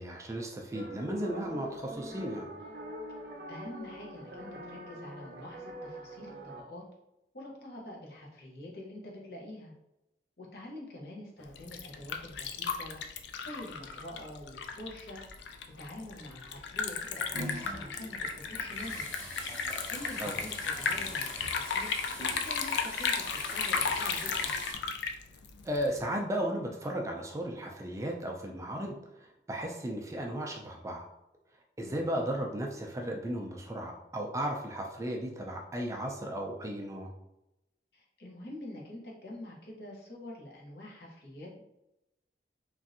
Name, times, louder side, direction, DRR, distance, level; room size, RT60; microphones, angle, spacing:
voice 1, 0.0-2.5 20.2-20.3 25.6-31.0 31.8-37.1, right 1 dB, 15° right, 1 dB, 0.3 m, -35 dB
sound 1, 0.7-6.6, equal, 60° right, 0.7 m, -44 dB
voice 2, 3.5-6.8 7.3-9.7 10.4-13.0 13.4-15.2 15.8-19.0 19.9-21.9 22.3-24.6 31.9-32.1 37.9-41.6, left 1 dB, 65° left, -2 dB, 0.8 m, -46 dB
Liquid, 11.4-26.0, left 5 dB, 80° left, 0.3 m, -34 dB
sound 2, 17.0-24.7, equal, 40° left, 1.5 m, -43 dB
3.1 x 2.6 x 2.5 m, 0.88 s
head